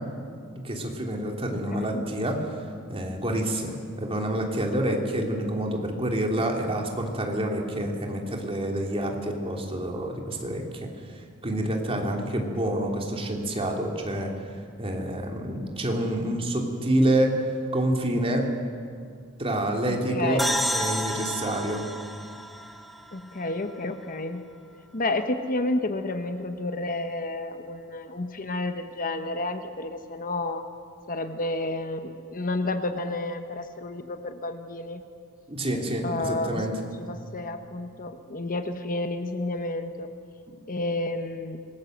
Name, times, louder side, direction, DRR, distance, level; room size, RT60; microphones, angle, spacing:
voice 1, 0.6-2.4 2.9-14.3 14.8-17.3 17.7-18.5 19.4-20.4 20.7-21.8 35.5-36.7, right 1 dB, 25° right, 1 dB, 3.1 m, -27 dB
voice 2, 1.5-2.0 19.9-20.6 23.1-24.5 24.9-30.6 31.1-35.0 36.0-40.1 40.7-41.6, left 2 dB, 40° left, 8 dB, 1.0 m, -31 dB
sound 1, 20.4-23.9, equal, ahead, 1.0 m, -31 dB
26.5 x 20.0 x 8.0 m, 2.3 s
head